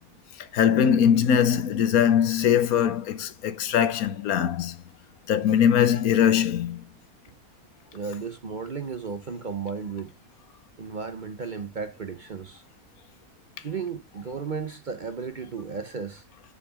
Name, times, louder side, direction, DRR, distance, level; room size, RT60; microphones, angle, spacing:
voice 1, 0.5-4.7 5.3-6.8, left 9 dB, 80° left, 1.3 m, -21 dB
voice 2, 7.9-10.1 10.8-12.6 13.6-16.2, right 5 dB, 45° right, 0.7 m, -34 dB
7.0 x 5.6 x 6.1 m
omnidirectional pair, 1.5 m